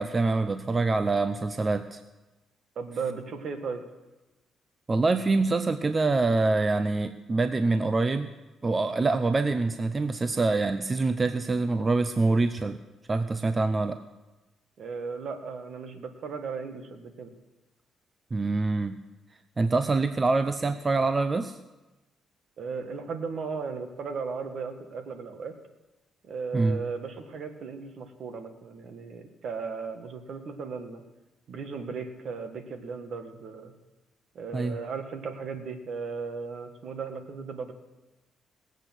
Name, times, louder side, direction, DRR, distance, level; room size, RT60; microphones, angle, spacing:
voice 1, 0.0-2.0 4.9-8.3 8.6-12.8 13.1-14.0 18.3-19.0 19.6-21.6 26.5-26.8 34.5-34.7, right 3 dB, 30° right, 11 dB, 0.6 m, -25 dB
voice 2, 2.7-3.8 14.8-17.3 22.6-25.5 26.2-31.0 31.5-33.7 34.3-37.7, right 5 dB, 60° right, 7 dB, 1.6 m, -36 dB
19.5 x 8.1 x 6.1 m, 1.1 s
cardioid pair, 90°, 0 cm